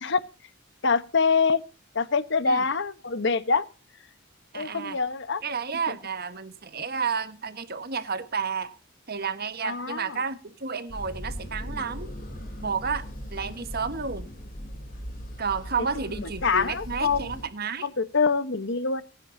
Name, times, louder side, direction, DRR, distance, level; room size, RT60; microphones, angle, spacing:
voice 1, 0.8-1.6 1.9-3.6 4.5-5.4 5.9-6.0 9.6-10.2 16.2-17.3 17.8-19.0, left 4 dB, 65° left, 1.1 m, -25 dB
voice 2, 4.5-5.0 5.4-8.8 9.1-12.1 12.6-14.3 15.4-17.9, right 5 dB, 50° right, 1.4 m, -31 dB
sound 1, 10.9-17.5, equal, 45° left, 3.5 m, -39 dB
25.5 x 10.0 x 2.7 m
head